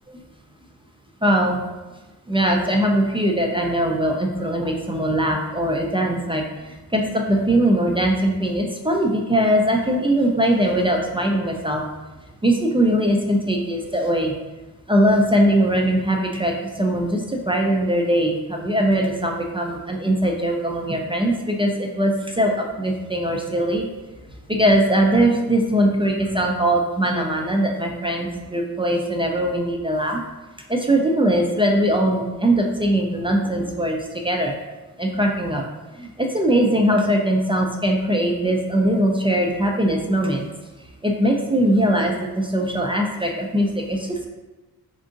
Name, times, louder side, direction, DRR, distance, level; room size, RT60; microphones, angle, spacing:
voice 1, 1.2-1.6 2.3-6.4 6.9-11.8 12.4-14.3 14.9-23.9 24.5-30.2 30.7-34.5 35.0-35.6 36.0-40.4 41.0-44.3, right 1 dB, 15° right, 1 dB, 0.3 m, -21 dB
3.6 x 2.5 x 3.7 m, 1.2 s
cardioid pair, 100°, 38 cm